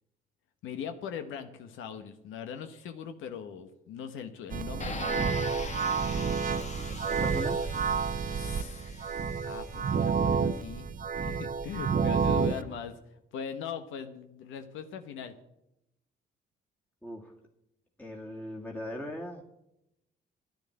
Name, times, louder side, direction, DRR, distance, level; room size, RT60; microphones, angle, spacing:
voice 1, 0.6-5.4 8.3-8.8 9.4-13.0 13.3-15.3, left 7 dB, 85° left, 8 dB, 1.1 m, -40 dB
sound 1, 4.5-12.6, right 6 dB, 40° right, 0.8 m, -29 dB
sound 2, 4.8-9.8, left 5 dB, 35° left, 1.2 m, -43 dB
voice 2, 6.9-7.6 17.0-17.3 18.0-19.4, left 1 dB, 10° left, -1 dB, 1.9 m, -39 dB
10.5 x 9.8 x 7.6 m, 0.85 s
cardioid pair, 90°, 20 cm